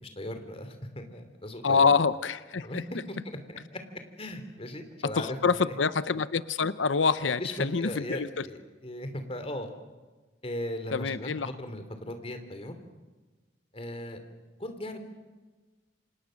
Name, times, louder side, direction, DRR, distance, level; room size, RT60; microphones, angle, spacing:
voice 1, 0.0-1.9 2.6-2.8 3.1-3.4 3.7-3.8 4.2-5.6 7.2-9.7 10.4-12.8 13.7-14.2 14.6-15.0, left 1 dB, 30° left, 7 dB, 2.9 m, -38 dB
voice 2, 1.6-2.8 5.2-8.5 10.9-11.5, left 5 dB, 85° left, 15 dB, 0.8 m, -26 dB
28.5 x 26.5 x 6.4 m, 1.3 s
head